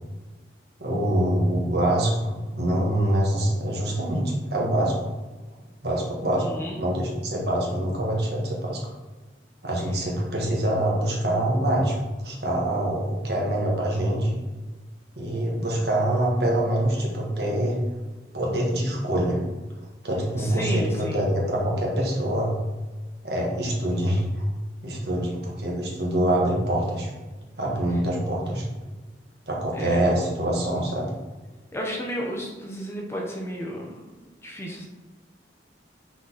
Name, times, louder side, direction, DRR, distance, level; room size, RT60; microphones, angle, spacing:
voice 1, 0.8-5.0 5.8-8.8 9.6-14.4 15.1-17.8 18.3-19.4 20.0-22.6 23.2-24.5 24.8-27.1 27.6-28.6 29.5-31.1, right 1 dB, 65° right, -2 dB, 1.7 m, -25 dB
voice 2, 6.4-6.8 20.4-21.3 29.7-30.0 31.7-34.9, equal, 15° left, -1 dB, 0.9 m, -33 dB
6.1 x 4.1 x 4.2 m, 1.2 s
head